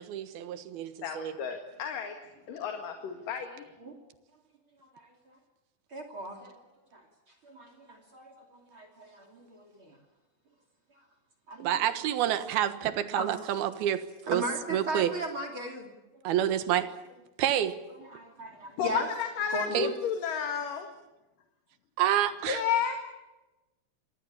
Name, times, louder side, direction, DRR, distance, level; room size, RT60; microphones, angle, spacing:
voice 1, 0.0-1.3 11.6-14.4 14.7-15.1 16.2-16.9 17.4-17.8 19.7-19.9 22.0-22.6, right 11 dB, 80° right, 11 dB, 3.3 m, -28 dB
voice 2, 1.0-2.1 2.5-3.6 18.8-20.9 22.5-23.0, left 8 dB, 65° left, 5 dB, 3.4 m, -32 dB
voice 3, 4.8-5.4 5.9-6.6 6.9-7.0 7.4-10.0 11.5-11.9 13.1-13.3 14.3-15.9 16.1-16.3 16.8-16.9 17.9-19.1 19.5-19.9, right 1 dB, 35° right, 3 dB, 3.4 m, -38 dB
26.5 x 19.0 x 8.6 m, 1.1 s
omnidirectional pair, 4.4 m